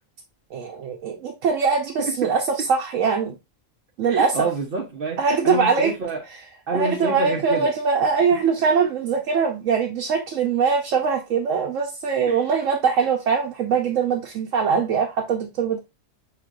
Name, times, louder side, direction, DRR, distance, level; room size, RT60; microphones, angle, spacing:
voice 1, 0.5-2.4 2.7-3.3 4.0-4.5 5.2-5.9 6.7-15.8, right 5 dB, 80° right, 1.1 m, -22 dB
voice 2, 4.1-6.2 6.7-7.7 8.3-8.4 12.3-12.5, right 4 dB, 50° right, 0.8 m, -28 dB
5.9 x 3.0 x 2.5 m
omnidirectional pair, 1.3 m